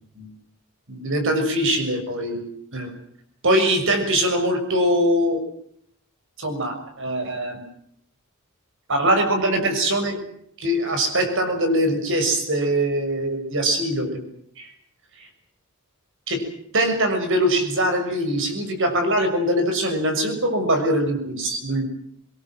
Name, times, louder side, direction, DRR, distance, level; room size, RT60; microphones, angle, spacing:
voice 1, 0.9-2.5 2.7-2.9 3.4-5.4 6.4-7.6 8.9-10.2 10.6-14.2 14.6-14.7 15.2-15.3 16.3-16.4 16.7-21.8, right 1 dB, 60° right, 6 dB, 6.5 m, -22 dB
25.0 x 22.0 x 7.8 m, 0.69 s
head